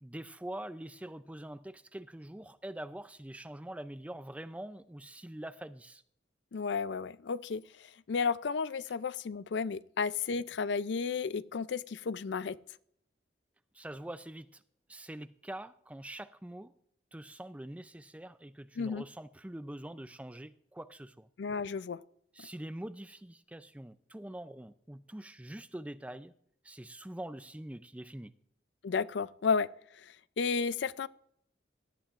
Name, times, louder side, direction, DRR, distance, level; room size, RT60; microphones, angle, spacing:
voice 1, 0.0-6.0 13.7-14.6 14.9-16.7 17.1-21.3 22.3-26.3 26.6-28.3, right 1 dB, 5° right, 0.4 m, -44 dB
voice 2, 6.5-12.6 18.8-19.0 21.4-22.0 28.8-29.7 30.0-31.1, left 5 dB, 75° left, 0.4 m, -33 dB
18.5 x 13.0 x 2.5 m
head